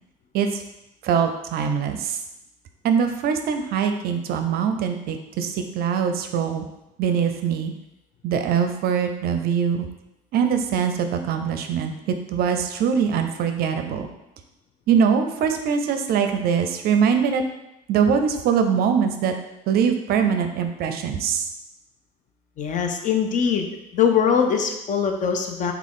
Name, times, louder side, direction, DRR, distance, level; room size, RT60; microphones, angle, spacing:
voice 1, 1.0-2.2 2.8-6.7 7.0-7.7 8.2-9.9 10.3-14.1 14.9-17.4 17.9-19.3 19.7-21.5, right 7 dB, 60° right, 7 dB, 0.4 m, -22 dB
voice 2, 22.6-23.7 23.9-25.7, left 7 dB, 45° left, 5 dB, 0.5 m, -22 dB
3.6 x 2.3 x 3.5 m, 0.88 s
supercardioid pair, 85°, 18 cm